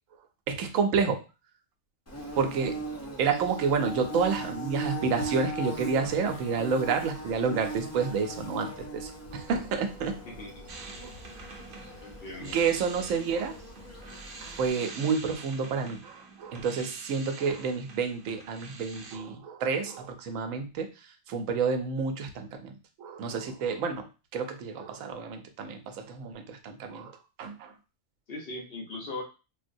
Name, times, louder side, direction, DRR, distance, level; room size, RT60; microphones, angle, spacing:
voice 1, 0.5-1.2 2.4-2.8 3.2-10.2 11.0-11.1 12.4-13.6 14.6-20.9 21.3-22.7 23.0-27.7, right 5 dB, 90° right, 7 dB, 1.0 m, -29 dB
Bird / Buzz, 2.1-14.7, right 2 dB, 25° left, 0.3 m, -39 dB
voice 2, 10.2-10.7 12.0-12.6 28.3-29.2, left 2 dB, 55° left, 0 dB, 0.9 m, -39 dB
sound 1, 10.7-19.2, right 4 dB, 55° right, 0.7 m, -46 dB
3.7 x 2.1 x 2.5 m, 0.31 s
omnidirectional pair, 1.3 m